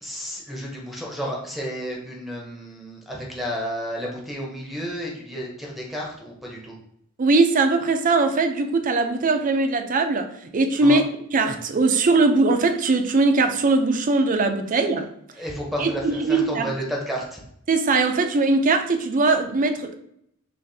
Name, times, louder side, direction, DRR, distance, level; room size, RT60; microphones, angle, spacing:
voice 1, 0.0-6.8 10.8-11.0 15.3-17.4, equal, ahead, 0.8 m, -32 dB
voice 2, 7.2-11.0 11.3-15.1 15.8-16.7 17.7-20.0, right 3 dB, 40° right, 0.5 m, -20 dB
6.3 x 2.5 x 2.7 m
head